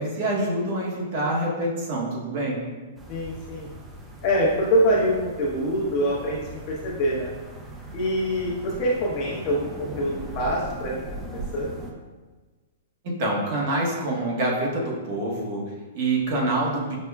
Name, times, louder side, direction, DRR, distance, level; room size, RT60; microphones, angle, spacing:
voice 1, 0.0-2.6 13.0-17.0, right 1 dB, 45° right, -2 dB, 0.9 m, -26 dB
sound 1, 3.0-11.9, right 1 dB, 10° right, 0.4 m, -39 dB
voice 2, 3.1-3.7 4.2-7.3 7.9-10.9 11.2-11.8, equal, 40° left, -4 dB, 0.9 m, -25 dB
6.3 x 2.2 x 2.3 m, 1.3 s
hypercardioid pair, 160°, 0 cm